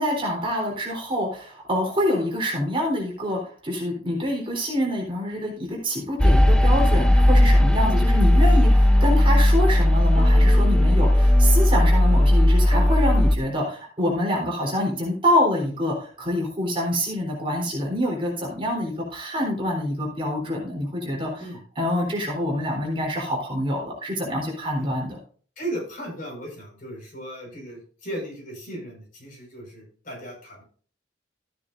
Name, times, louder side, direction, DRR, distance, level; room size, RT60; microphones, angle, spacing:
voice 1, 0.0-21.5 21.8-25.2, left 1 dB, 25° right, -1 dB, 3.7 m, -26 dB
sound 1, 6.2-13.4, left 1 dB, 5° left, 0.4 m, -16 dB
voice 2, 25.6-30.6, right 1 dB, 45° left, -1 dB, 5.3 m, -36 dB
13.5 x 9.5 x 2.6 m, 0.44 s
head